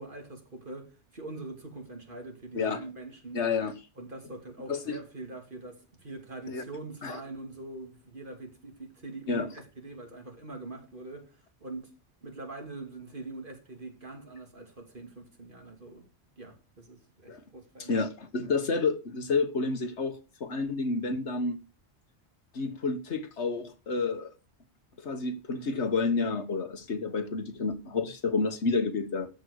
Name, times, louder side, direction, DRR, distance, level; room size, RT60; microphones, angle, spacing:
voice 1, 0.0-3.4 4.0-11.9 12.2-16.0 16.4-18.0, right 2 dB, 50° right, 2.7 m, -43 dB
voice 2, 3.3-3.7 4.7-5.0 6.5-6.6 7.0-7.2 9.3-9.5 17.3-17.4 17.8-21.6 22.5-24.3 25.0-29.3, left 4 dB, 85° left, 1.7 m, -30 dB
13.5 x 5.6 x 6.4 m
omnidirectional pair, 1.1 m